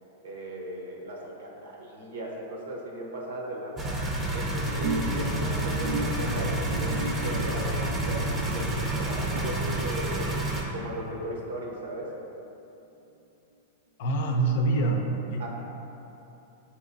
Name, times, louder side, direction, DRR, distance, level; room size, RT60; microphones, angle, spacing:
voice 1, 0.2-3.9 4.3-10.4 10.7-12.1 15.4-15.5, right 1 dB, 85° right, -1 dB, 0.8 m, -37 dB
sound 1, 3.8-10.6, right 1 dB, 15° right, 0.6 m, -29 dB
sound 2, 4.8-11.4 11.7-12.1 12.4-12.5, right 3 dB, 60° right, 0.4 m, -37 dB
voice 2, 14.0-15.0 15.3-15.5, right 2 dB, 60° left, 2 dB, 0.5 m, -25 dB
6.3 x 2.9 x 2.6 m, 2.9 s
hypercardioid pair, 135°, 0 cm